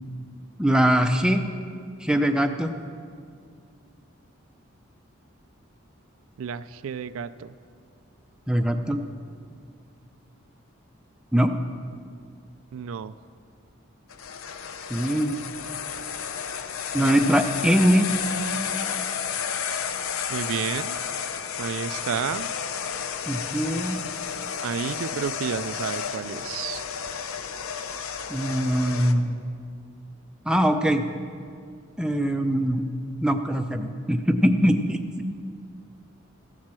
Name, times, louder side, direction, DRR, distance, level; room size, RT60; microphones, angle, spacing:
voice 1, 0.6-1.4 2.0-2.7 8.5-9.0 11.3-11.5 14.9-15.4 16.9-18.1 23.3-24.0 28.3-29.4 30.5-31.0 32.0-32.8 33.2-35.0, equal, 5° right, 5 dB, 0.5 m, -22 dB
voice 2, 6.4-7.5 12.7-13.1 20.3-21.0 21.6-22.5 24.6-26.8, right 7 dB, 80° right, 14 dB, 0.3 m, -31 dB
sound 1, 14.1-29.1, left 7 dB, 85° left, 0.6 m, -32 dB
14.5 x 7.4 x 6.2 m, 2.2 s
head